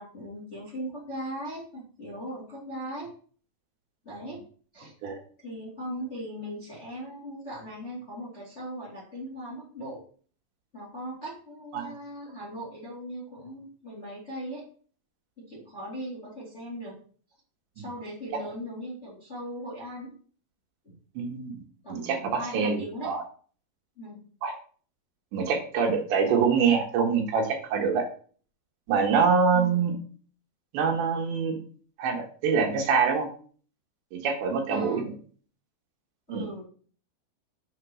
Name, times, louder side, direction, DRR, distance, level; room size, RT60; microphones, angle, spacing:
voice 1, 0.0-3.1 4.0-4.4 4.7-4.9 5.4-10.0 10.7-14.6 15.4-17.0 17.7-20.1 20.8-20.9 21.8-23.1 24.0-24.2 29.5-29.8 34.7-35.1 36.3-36.6, equal, 20° left, -4 dB, 1.8 m, -39 dB
voice 2, 21.2-21.6 21.9-23.2 24.4-24.5 25.3-28.0 28.9-29.9 30.7-31.6 32.0-33.3 34.1-35.0 36.3-36.5, right 5 dB, 75° right, 1 dB, 3.6 m, -25 dB
7.6 x 5.9 x 4.5 m, 0.43 s
omnidirectional pair, 5.4 m